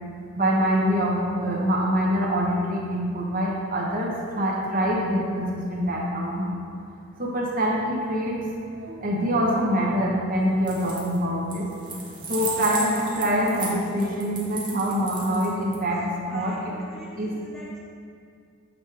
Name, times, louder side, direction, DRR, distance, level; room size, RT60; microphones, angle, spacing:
voice 1, 0.3-6.6 7.2-8.4 8.7-11.7 12.3-16.5 17.2-17.3, equal, 40° right, -3 dB, 0.9 m, -25 dB
sound 1, 10.6-11.2 11.5-15.7, right 3 dB, 20° right, 1.0 m, -34 dB
voice 2, 12.4-14.3 15.0-15.7 16.0-17.8, equal, ahead, -7 dB, 1.3 m, -46 dB
7.3 x 3.3 x 4.8 m, 2.3 s
head